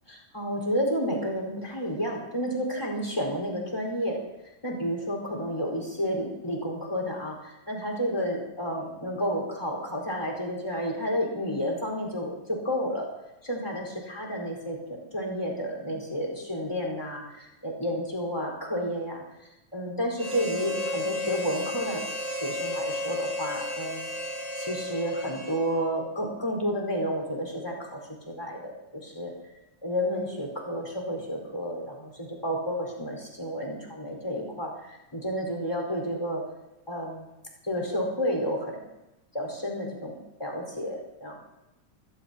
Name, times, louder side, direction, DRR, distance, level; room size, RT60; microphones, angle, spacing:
voice 1, 0.1-4.2 4.6-13.1 13.4-19.2 19.7-22.0 22.4-24.1 24.6-29.3 29.8-36.4 36.9-37.3 37.6-39.0 39.3-41.4, equal, 10° left, -1 dB, 4.5 m, -31 dB
Harmonica, 20.2-26.0, left 1 dB, 10° right, 4.4 m, -33 dB
27.5 x 16.5 x 2.9 m, 0.96 s
omnidirectional pair, 3.7 m